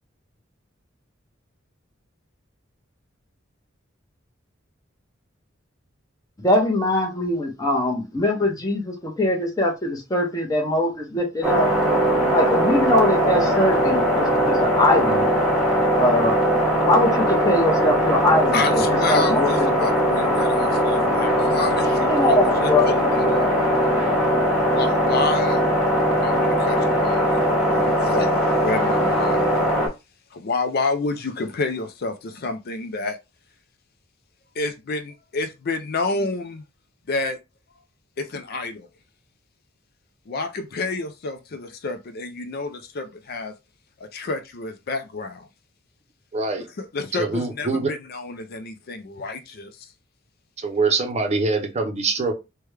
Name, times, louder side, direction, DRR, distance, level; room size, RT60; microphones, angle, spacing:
voice 1, 6.4-11.7 12.3-15.2 15.9-16.3 16.8-18.8 19.1-19.7 22.0-23.5, left 1 dB, 20° left, 0.8 m, -22 dB
sound 1, 11.4-29.9, equal, 5° right, 1.2 m, -20 dB
voice 2, 18.5-23.5 24.7-25.6 26.1-29.5 30.3-33.2 34.6-36.6 37.1-37.4 38.2-38.9 40.3-43.5 44.0-45.5 46.8-49.9, left 3 dB, 50° left, 0.4 m, -29 dB
voice 3, 46.3-46.7 47.2-47.9 50.6-52.3, right 3 dB, 35° right, 0.6 m, -24 dB
3.4 x 2.2 x 3.2 m
head